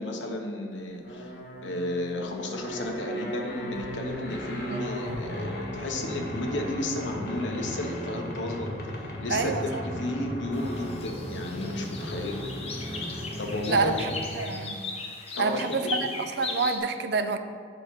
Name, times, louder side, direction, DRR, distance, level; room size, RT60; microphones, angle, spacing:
voice 1, 0.0-1.3 1.6-12.5 13.4-14.0 15.4-16.0, left 1 dB, 85° left, 2 dB, 0.9 m, -33 dB
sound 1, 1.0-14.4, equal, 55° left, 1.3 m, -36 dB
voice 2, 9.3-9.8 13.7-14.1 14.4-14.8 15.4-15.9 16.4-17.4, right 4 dB, 60° right, 9 dB, 0.4 m, -27 dB
sound 2, 10.5-16.8, left 3 dB, 35° left, 0.8 m, -38 dB
7.6 x 3.8 x 6.2 m, 2.2 s
head